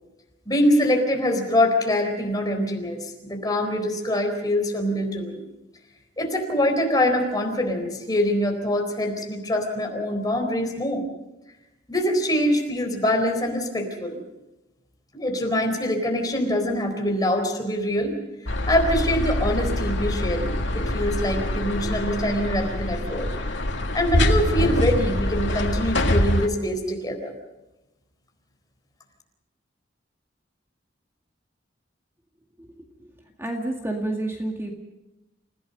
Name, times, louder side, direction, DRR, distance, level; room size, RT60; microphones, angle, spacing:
voice 1, 0.5-3.0 3.3-5.4 6.2-11.1 11.9-14.2 15.1-18.2 18.7-23.3 23.9-27.3, left 1 dB, 20° left, 3 dB, 4.2 m, -24 dB
sound 1, 18.5-26.5, left 1 dB, 85° left, 2.0 m, -24 dB
voice 2, 33.4-34.7, right 1 dB, 15° right, 1 dB, 2.1 m, -29 dB
29.5 x 17.0 x 5.4 m, 0.98 s
head